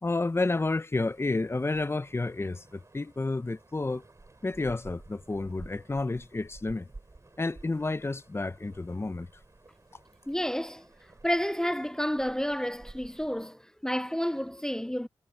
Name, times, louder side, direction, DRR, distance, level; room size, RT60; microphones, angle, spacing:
voice 1, 0.0-4.0 4.4-6.9 7.4-9.3, left 3 dB, 30° left, 0.8 m, -30 dB
sound 1, 0.9-13.5, right 2 dB, 35° right, 3.7 m, -53 dB
voice 2, 10.3-10.9 11.2-15.1, equal, 5° left, 0.4 m, -30 dB
cardioid pair, 50°, 9 cm